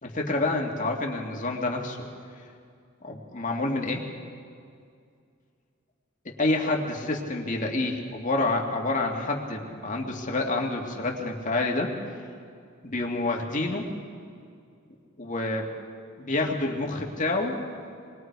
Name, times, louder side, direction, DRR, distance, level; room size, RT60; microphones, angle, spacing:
voice 1, 0.0-2.0 3.1-4.0 6.4-11.9 12.8-13.9 15.2-15.7 16.2-17.5, left 2 dB, 40° left, 0 dB, 2.1 m, -28 dB
27.5 x 21.5 x 4.7 m, 2.3 s
head